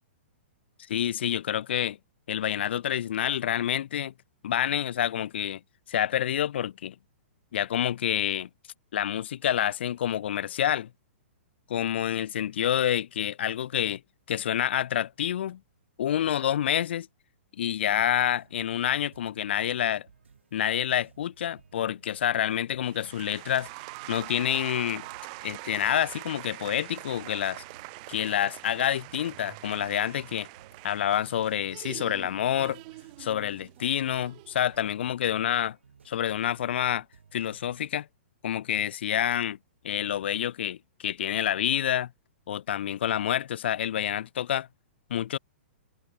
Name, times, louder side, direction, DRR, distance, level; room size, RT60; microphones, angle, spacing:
voice 1, 0.9-2.0 2.3-4.1 4.4-5.6 5.9-6.9 7.5-8.5 8.9-10.9 11.7-14.0 14.3-15.6 16.0-17.1 17.6-20.1 20.5-23.7 24.1-25.1 25.4-27.6 28.1-30.5 30.8-32.8 33.2-35.8 36.1-37.0 37.3-38.1 38.4-39.6 39.8-42.1 42.5-44.7 45.1-45.4, left 10 dB, 65° left, 0.6 m, -28 dB
sound 1, 18.1-37.9, right 6 dB, 80° right, 4.3 m, -58 dB
sound 2, 22.8-34.8, right 29 dB, 40° right, 0.5 m, -44 dB
hypercardioid pair, 120°, 6 cm